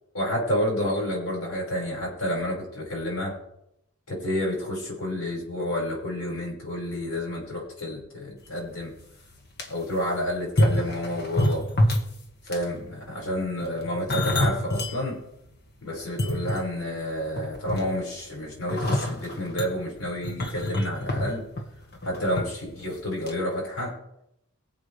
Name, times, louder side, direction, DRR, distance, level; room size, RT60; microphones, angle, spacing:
voice 1, 0.1-3.3 4.1-8.9 9.7-11.7 12.5-15.2 15.8-21.4 22.0-23.9, left 1 dB, 75° left, -2 dB, 5.6 m, -29 dB
sound 1, 8.7-8.8 9.3-9.7 10.4-12.2 12.5-12.8 13.6-15.0 15.4-15.5 16.0-17.0 17.4-18.1 18.7-22.4 22.7-23.0 23.3-23.4, left 1 dB, 45° left, 1.8 m, -26 dB
23.0 x 7.9 x 3.5 m, 0.81 s
head